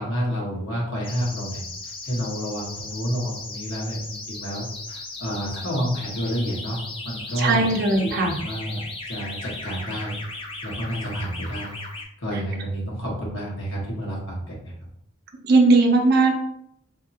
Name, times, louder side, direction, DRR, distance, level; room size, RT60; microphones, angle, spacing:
voice 1, 0.0-6.8 7.0-7.7 8.0-10.2 10.6-11.7 12.2-14.7, equal, 65° left, -4 dB, 1.3 m, -29 dB
sound 1, 1.0-12.0, left 3 dB, 25° left, 0.5 m, -37 dB
voice 2, 7.4-8.4 15.4-16.3, right 3 dB, 50° right, 2 dB, 0.6 m, -18 dB
3.5 x 2.8 x 2.8 m, 0.76 s
head